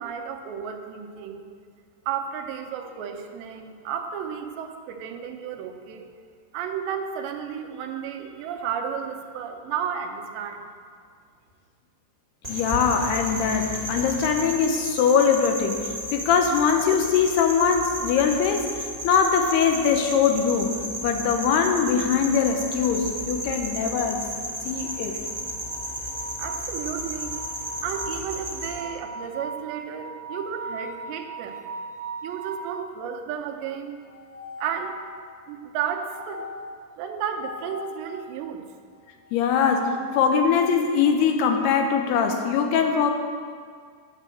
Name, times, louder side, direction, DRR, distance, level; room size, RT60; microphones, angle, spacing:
voice 1, 0.0-1.5 2.1-6.1 6.5-10.7 26.4-27.4 27.8-31.6 32.2-34.0 34.6-35.0 35.5-36.5 37.0-38.6, right 8 dB, 85° right, 5 dB, 3.0 m, -33 dB
sound 1, 12.4-28.8, equal, 15° right, 1.2 m, -33 dB
voice 2, 12.5-20.7 21.0-24.2 24.7-25.2 39.3-43.1, left 6 dB, 75° left, 4 dB, 2.7 m, -22 dB
sound 2, 24.7-32.8 34.0-35.3 36.1-38.0 39.2-40.6, right 1 dB, 15° left, 1.6 m, -39 dB
9.9 x 7.8 x 7.5 m, 2.1 s
omnidirectional pair, 5.0 m